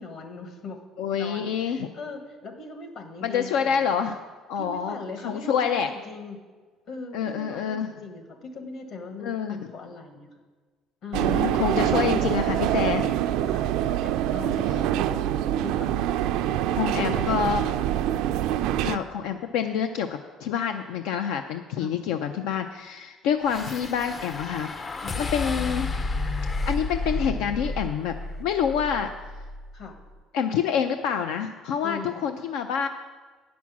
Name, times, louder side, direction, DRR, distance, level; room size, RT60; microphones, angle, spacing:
voice 1, 0.0-0.8 1.1-3.8 4.5-6.4 6.9-10.3 11.0-11.2 11.7-12.3 13.4-17.7 18.6-18.8 21.8-21.9 25.0-25.2 29.7-30.0 31.8-32.3, left 3 dB, 55° left, 5 dB, 1.4 m, -39 dB
voice 2, 1.0-1.9 3.2-4.2 4.5-5.0 5.2-5.9 7.1-7.9 9.2-9.6 11.1-13.1 16.7-17.6 18.8-24.7 25.2-25.9 26.7-28.1 28.4-29.1 30.3-32.9, left 7 dB, 90° left, 7 dB, 0.4 m, -27 dB
sound 1, 11.1-19.0, right 12 dB, 80° right, 0.4 m, -25 dB
sound 2, 23.5-29.8, left 3 dB, 25° left, 0.4 m, -31 dB
9.3 x 6.1 x 7.2 m, 1.4 s
cardioid pair, 130°, 0 cm